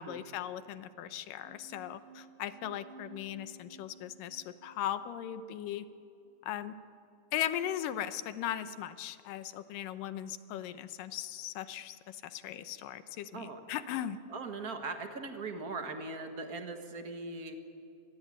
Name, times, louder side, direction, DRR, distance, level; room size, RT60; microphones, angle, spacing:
voice 1, 0.0-5.9 6.4-6.7 7.3-14.2, left 11 dB, 90° left, 12 dB, 2.5 m, -38 dB
sound 1, 1.4-6.4, right 3 dB, 70° right, 5.2 m, -55 dB
voice 2, 14.3-17.5, right 3 dB, 40° right, 5 dB, 1.5 m, -40 dB
25.5 x 20.0 x 8.8 m, 2.5 s
omnidirectional pair, 3.8 m